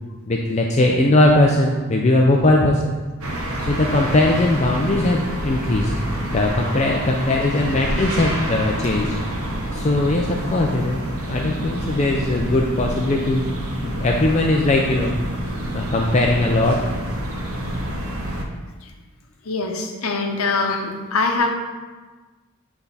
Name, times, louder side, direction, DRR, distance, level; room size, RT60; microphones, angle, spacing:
voice 1, 0.3-2.9 3.6-5.9 6.3-9.2 9.7-11.0 11.3-13.4 13.8-15.1 15.7-16.8, left 2 dB, 30° left, 0 dB, 0.4 m, -19 dB
sound 1, 3.2-18.4, right 1 dB, 90° right, 0.9 m, -27 dB
voice 2, 15.5-15.9 19.4-21.5, left 3 dB, 85° left, 3 dB, 0.8 m, -23 dB
7.8 x 3.5 x 4.1 m, 1.3 s
head